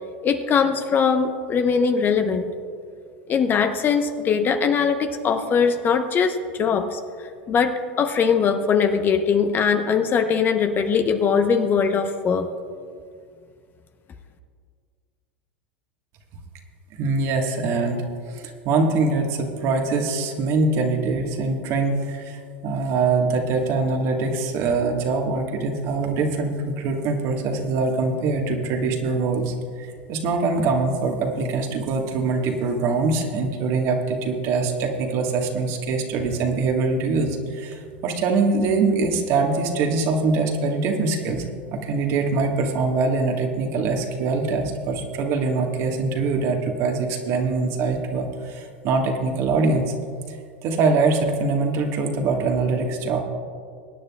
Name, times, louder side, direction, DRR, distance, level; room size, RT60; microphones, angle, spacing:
voice 1, 0.2-2.5 3.3-7.0 7.5-12.5, left 6 dB, 35° left, 7 dB, 0.9 m, -21 dB
voice 2, 17.0-18.0 18.3-41.4 41.7-49.9 50.3-50.4 50.6-53.2, right 3 dB, 50° right, 2 dB, 1.7 m, -23 dB
22.5 x 9.8 x 2.4 m, 2.2 s
hypercardioid pair, 95°, 6 cm